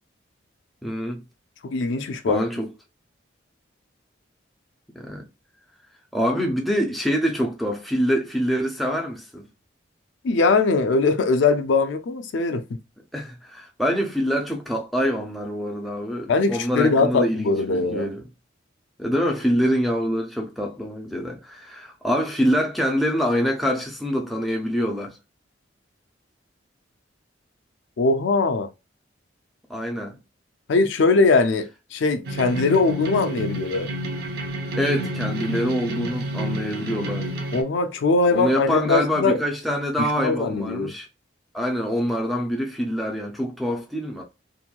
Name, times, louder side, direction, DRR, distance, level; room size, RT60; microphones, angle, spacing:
voice 1, 0.8-1.2 2.3-2.7 5.0-5.3 6.1-9.5 13.1-18.2 19.0-25.2 29.7-30.2 34.7-37.3 38.3-41.1 41.5-44.2, equal, ahead, 0.4 m, -25 dB
voice 2, 1.6-2.4 10.2-12.6 16.3-18.1 28.0-28.7 30.7-33.9 37.5-39.4 40.0-40.9, left 3 dB, 70° left, 0.4 m, -21 dB
sound 1, 32.2-37.6, equal, 55° right, 0.5 m, -29 dB
2.9 x 2.6 x 2.2 m
head